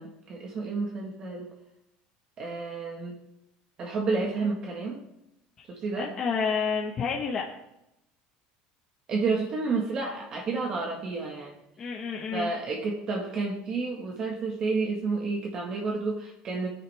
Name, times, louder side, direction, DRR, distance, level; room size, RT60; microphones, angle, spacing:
voice 1, 0.0-1.5 2.4-3.2 3.8-5.0 5.7-6.1 9.1-11.6 12.3-16.7, right 4 dB, 30° right, 0 dB, 1.7 m, -30 dB
voice 2, 5.9-7.4 11.8-12.5, left 5 dB, 25° left, -1 dB, 1.4 m, -29 dB
21.0 x 9.8 x 3.5 m, 0.85 s
cardioid pair, 165°, 2 cm